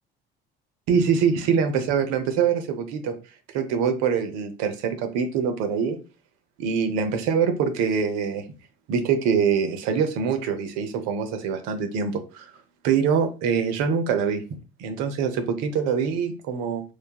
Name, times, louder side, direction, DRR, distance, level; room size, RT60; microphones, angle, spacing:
voice 1, 0.9-3.2 3.5-6.0 6.6-8.4 8.9-12.5 12.8-14.4 14.8-16.8, right 6 dB, 65° right, 7 dB, 0.6 m, -24 dB
3.1 x 2.1 x 2.2 m, 0.34 s
hypercardioid pair, 60°, 29 cm